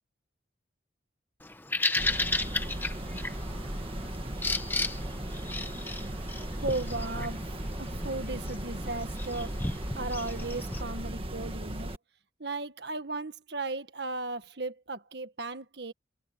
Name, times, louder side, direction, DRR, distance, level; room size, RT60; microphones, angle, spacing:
Bird vocalization bird call bird song, 1.4-10.8, left 2 dB, 10° left, 1.1 m, -35 dB
sound 1, 2.0-12.0, right 1 dB, 30° right, 1.8 m, -37 dB
voice 1, 6.6-11.9 12.4-15.9, right 2 dB, 60° right, 1.7 m, -36 dB
head